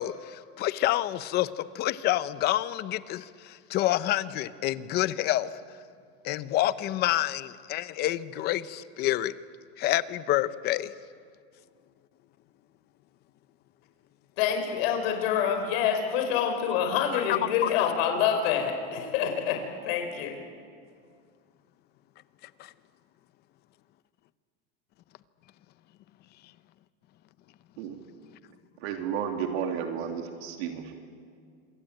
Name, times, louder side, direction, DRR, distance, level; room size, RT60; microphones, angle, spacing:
voice 1, 0.0-5.5 6.2-9.3 9.8-10.9 17.3-17.7 22.6-22.7, left 14 dB, 30° left, 15 dB, 0.7 m, -28 dB
voice 2, 14.4-19.6 19.8-20.3, left 8 dB, 60° left, 4 dB, 5.1 m, -26 dB
voice 3, 28.8-30.9, right 8 dB, 65° right, 3 dB, 2.9 m, -32 dB
26.0 x 23.5 x 9.1 m, 2.1 s
supercardioid pair, 165°, 34 cm